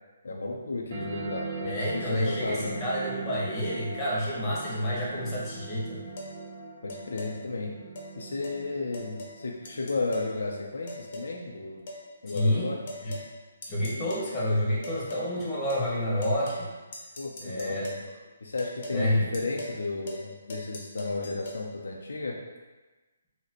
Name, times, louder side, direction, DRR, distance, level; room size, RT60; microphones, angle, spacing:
voice 1, 0.2-2.8 6.8-7.7 8.2-11.8 12.2-12.8 17.2-18.0 18.4-22.4, left 3 dB, 80° left, 0 dB, 0.4 m, -33 dB
sound 1, 0.9-11.9, right 4 dB, 50° right, 0.6 m, -41 dB
voice 2, 1.6-6.0 12.3-12.7 13.0-13.1 13.7-16.7 17.4-17.9 18.9-19.3, left 1 dB, 20° left, -6 dB, 1.0 m, -29 dB
sound 2, 6.2-6.3 6.9-7.3 7.9-8.1 8.4-8.6 8.9-9.4 9.6-10.3 10.9-11.3 11.9-12.0 12.4-12.5 12.9-13.3 13.6-14.3 14.8-15.3 15.7-15.9 16.2-16.7 16.9-18.1 18.6-19.0 19.3-19.8 20.1-20.2 20.5-21.6, left 1 dB, 45° left, 0.7 m, -40 dB
4.0 x 2.1 x 2.9 m, 1.2 s
hypercardioid pair, 155°, 0 cm